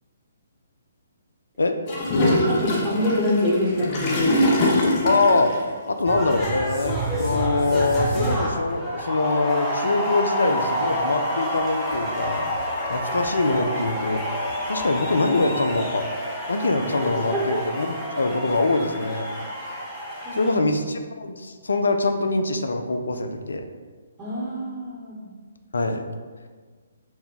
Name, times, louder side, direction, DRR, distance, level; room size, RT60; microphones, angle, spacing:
Gurgling / Toilet flush, 1.9-5.6, left 1 dB, 35° left, 0.7 m, -23 dB
voice 1, 2.2-4.7 17.3-17.4 20.2-20.5 24.2-25.3, left 1 dB, 15° right, -9 dB, 1.0 m, -25 dB
voice 2, 5.0-12.5 12.9-16.1 16.5-19.3 20.3-23.6 25.7-26.0, left 2 dB, 65° left, 7 dB, 0.4 m, -24 dB
sound 1, 6.1-20.5, equal, 5° left, 0.8 m, -28 dB
4.0 x 2.2 x 3.8 m, 1.5 s
figure-of-eight pair, 130°, 0 cm